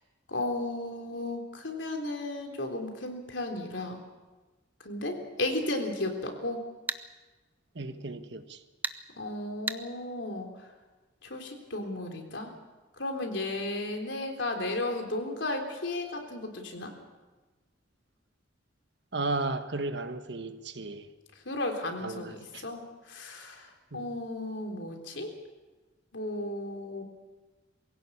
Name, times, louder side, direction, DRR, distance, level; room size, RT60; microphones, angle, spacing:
voice 1, 0.3-4.0 4.8-6.7 9.2-10.5 11.2-12.5 13.0-16.9 21.5-22.8 23.1-23.7 23.9-25.3 26.1-27.0, left 2 dB, 85° left, 3.6 m, -34 dB
sound 1, 6.9-7.0 8.8-9.0 9.7-9.8, right 3 dB, 10° right, 0.7 m, -32 dB
voice 2, 7.7-8.6 19.1-21.1 22.0-22.6 23.9-24.1, right 2 dB, 65° right, 1.4 m, -34 dB
22.5 x 16.5 x 8.6 m
head